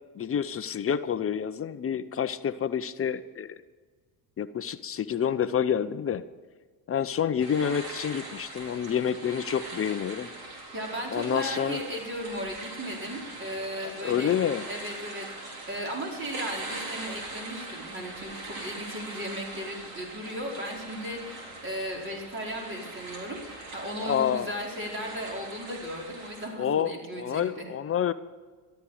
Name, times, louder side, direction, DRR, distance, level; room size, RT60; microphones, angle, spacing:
voice 1, 0.1-3.6 4.4-6.2 6.9-10.3 11.1-11.8 13.8-14.6 24.0-24.5 26.6-28.1, left 8 dB, 30° left, 12 dB, 0.7 m, -28 dB
sound 1, 7.4-26.5, right 2 dB, 50° right, 4.2 m, -41 dB
voice 2, 10.7-14.3 14.7-27.7, equal, 25° right, 0 dB, 4.6 m, -36 dB
14.0 x 13.0 x 5.0 m, 1.4 s
supercardioid pair, 95°, 47 cm